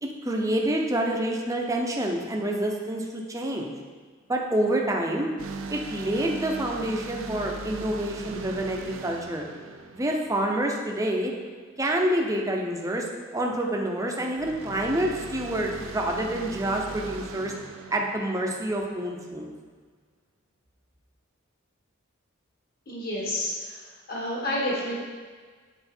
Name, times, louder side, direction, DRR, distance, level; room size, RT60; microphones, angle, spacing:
voice 1, 0.0-3.7 4.3-5.3 5.7-9.5 9.9-11.3 11.8-13.0 13.3-17.5 17.9-19.5, right 1 dB, 15° right, 0 dB, 0.7 m, -27 dB
sound 1, 5.4-10.9 14.4-19.1, right 4 dB, 85° right, 0.5 m, -39 dB
voice 2, 22.9-23.8 24.1-25.0, left 1 dB, 50° left, -4 dB, 1.7 m, -29 dB
7.9 x 4.3 x 4.4 m, 1.5 s
head